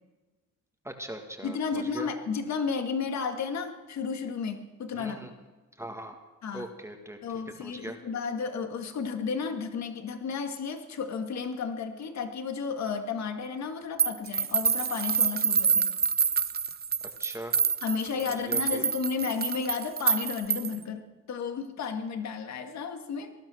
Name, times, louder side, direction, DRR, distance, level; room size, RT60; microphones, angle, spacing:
voice 1, 0.8-2.1 4.9-5.3 5.8-6.2 6.5-8.0 17.2-17.5 18.2-18.8, right 1 dB, 10° right, 3 dB, 1.8 m, -40 dB
voice 2, 1.4-5.2 6.4-6.7 7.2-15.9 17.8-23.3, left 5 dB, 65° left, 6 dB, 2.0 m, -33 dB
sound 1, 14.0-20.8, right 6 dB, 30° right, 0.7 m, -27 dB
18.5 x 12.0 x 6.3 m, 1.2 s
cardioid pair, 90°, 30 cm